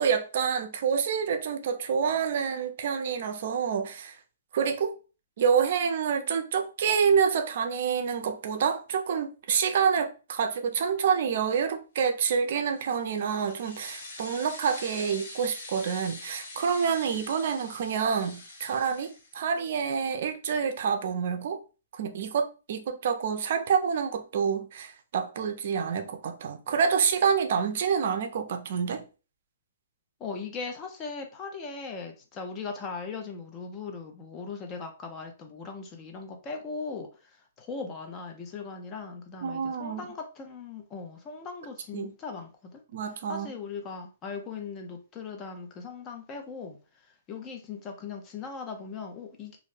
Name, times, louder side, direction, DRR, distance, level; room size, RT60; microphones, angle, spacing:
voice 1, 0.0-4.2 4.5-4.9 5.4-19.1 19.3-21.6 22.0-29.0 39.4-40.1 41.9-42.1 42.9-43.5, right 6 dB, 55° right, 0.4 m, -27 dB
sound 1, 12.7-19.7, left 2 dB, 50° left, 1.0 m, -44 dB
voice 2, 30.2-42.8 43.3-46.8 47.3-49.6, left 4 dB, 20° left, 0.4 m, -39 dB
2.4 x 2.1 x 3.1 m
hypercardioid pair, 155°, 0 cm